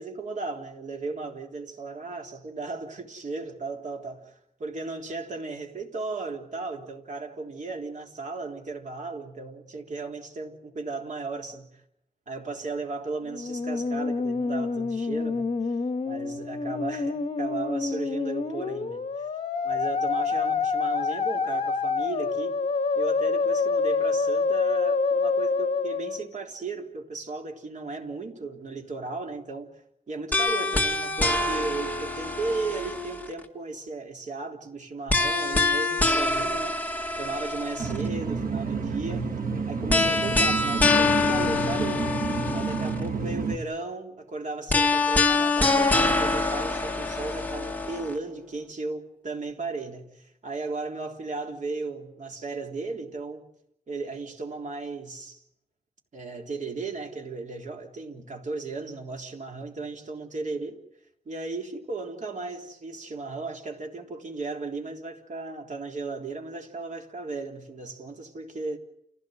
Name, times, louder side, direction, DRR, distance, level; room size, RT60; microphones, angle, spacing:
voice 1, 0.0-4.3 4.6-11.7 12.3-15.8 16.0-19.3 19.6-22.6 23.0-39.3 39.7-42.2 42.5-53.4 53.9-55.4 56.1-60.8 61.3-68.8, right 3 dB, 60° right, 3.7 m, -35 dB
Musical instrument, 13.3-26.3, left 4 dB, 45° left, 2.1 m, -27 dB
sound 1, 30.3-33.4 35.1-38.1 39.9-43.1 44.7-48.1, left 3 dB, 10° left, 2.1 m, -25 dB
sound 2, 37.8-43.6, right 5 dB, 75° right, 2.6 m, -30 dB
29.5 x 17.0 x 7.8 m
wide cardioid pair, 145°, 15 cm